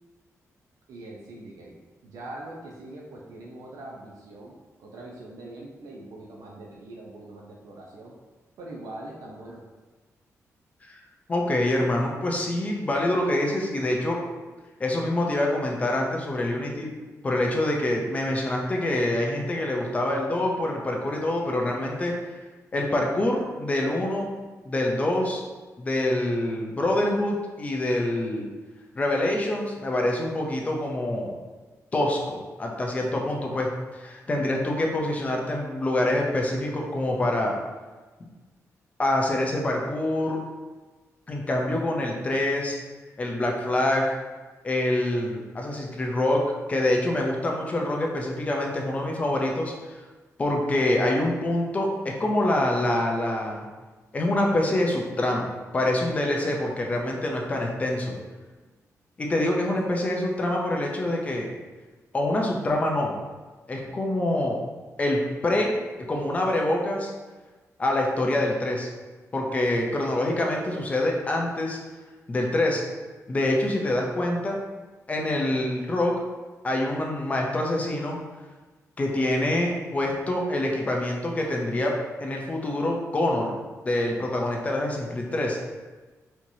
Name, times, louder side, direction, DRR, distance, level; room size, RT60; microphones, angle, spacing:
voice 1, 0.9-1.8 2.0-8.1 8.6-9.6, right 1 dB, 80° right, -3 dB, 0.6 m, -42 dB
voice 2, 11.3-14.2 14.8-16.9 17.2-22.1 22.7-24.4 24.7-25.4 25.8-28.5 28.9-31.3 31.9-33.7 34.0-37.5 38.2-38.3 39.0-40.4 41.3-42.8 43.2-44.2 44.6-50.0 50.4-53.7 54.1-58.1 59.2-61.5 62.1-63.1 63.7-64.6 65.0-65.8 66.1-67.1 67.8-68.9 69.3-71.8 72.3-72.8 73.3-74.6 75.1-76.1 76.6-78.2 79.0-81.9 82.2-83.5 83.8-85.6, left 1 dB, 25° left, 0 dB, 0.5 m, -25 dB
4.3 x 3.0 x 2.7 m, 1.3 s
wide cardioid pair, 160°, 6 cm